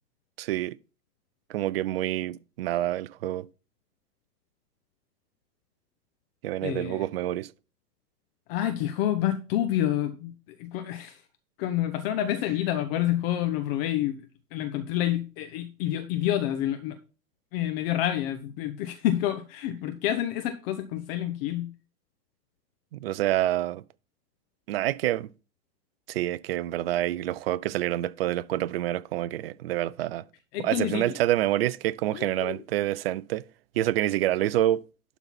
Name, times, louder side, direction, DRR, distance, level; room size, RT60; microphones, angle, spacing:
voice 1, 0.4-0.8 1.5-3.5 6.4-7.5 22.9-23.8 24.7-25.3 26.1-30.2 30.6-33.4 33.8-34.8, right 14 dB, 40° right, 0.4 m, -27 dB
voice 2, 6.6-7.1 8.5-10.3 10.6-11.2 11.6-14.2 14.5-17.0 17.5-21.7 30.5-31.2 32.1-32.6, left 12 dB, 40° left, 1.0 m, -28 dB
11.5 x 4.1 x 5.8 m
figure-of-eight pair, 110°, 46 cm